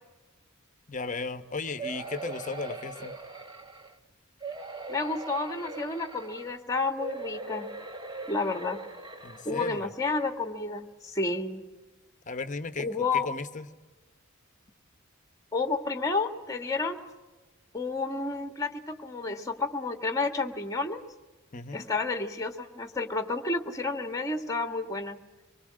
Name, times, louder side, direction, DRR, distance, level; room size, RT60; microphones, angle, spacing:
voice 1, 0.9-3.2 9.2-9.9 12.3-12.9 13.2-13.7 21.5-21.9, left 4 dB, 35° left, 10 dB, 1.0 m, -35 dB
sound 1, 1.8-3.9 4.4-6.6 7.0-9.8 10.4-10.5 10.8-10.9, right 2 dB, 20° right, 1.4 m, -40 dB
voice 2, 4.9-7.7 8.3-8.8 9.4-11.6 12.8-13.3 15.5-17.0 17.7-21.0 21.7-25.2, left 3 dB, 15° left, 7 dB, 1.6 m, -30 dB
24.5 x 21.5 x 7.6 m, 1.2 s
head